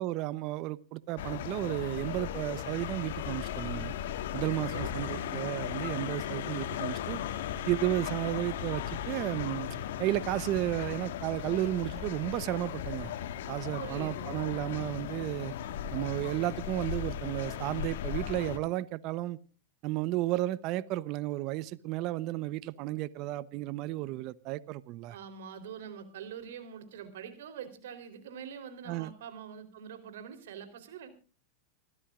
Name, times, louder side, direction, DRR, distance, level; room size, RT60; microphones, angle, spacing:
voice 1, 0.0-3.9 4.3-7.2 7.7-9.7 10.0-13.1 13.5-15.5 15.9-19.4 19.8-25.2 28.9-29.1, right 16 dB, 50° right, 0.8 m, -33 dB
sound 1, 1.2-18.6, left 10 dB, 70° left, 1.6 m, -37 dB
voice 2, 4.7-5.4 13.8-14.4 25.1-31.1, right 8 dB, 75° right, 3.6 m, -44 dB
28.5 x 13.5 x 2.5 m
hypercardioid pair, 110°, 0 cm